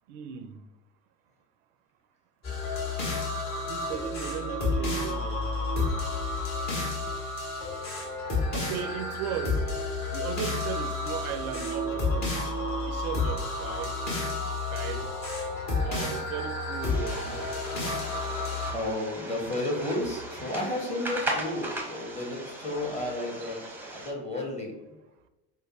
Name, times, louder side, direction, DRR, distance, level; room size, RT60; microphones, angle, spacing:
voice 1, 0.1-0.5 3.7-5.5 8.5-9.7 10.1-12.4 12.9-13.9 14.7-15.0 15.5-17.8, right 9 dB, 45° right, 0.4 m, -37 dB
sound 1, 2.4-18.7, left 2 dB, 35° left, 1.3 m, -31 dB
sound 2, 11.6-20.2, left 2 dB, 70° left, 0.8 m, -45 dB
sound 3, 16.8-24.1, right 1 dB, 5° right, 0.7 m, -38 dB
voice 2, 17.6-25.0, left 1 dB, 15° left, 1.0 m, -33 dB
5.0 x 2.2 x 2.9 m
figure-of-eight pair, 75°, 48 cm